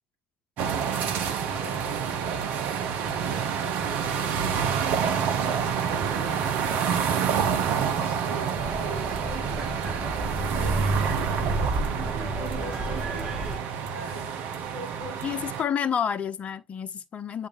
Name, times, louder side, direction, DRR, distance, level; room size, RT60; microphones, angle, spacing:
sound 1, 0.6-15.6, right 7 dB, 65° right, 1.4 m, -28 dB
voice 1, 0.9-6.5 7.1-10.9 11.9-13.5 13.7-14.3 14.7-15.4, right 2 dB, 85° right, 3.5 m, -43 dB
sound 2, 8.6-13.6, right 1 dB, 45° right, 5.6 m, -32 dB
voice 2, 15.2-17.5, left 8 dB, 45° left, 1.0 m, -29 dB
8.4 x 6.1 x 3.2 m
hypercardioid pair, 65°, 3 cm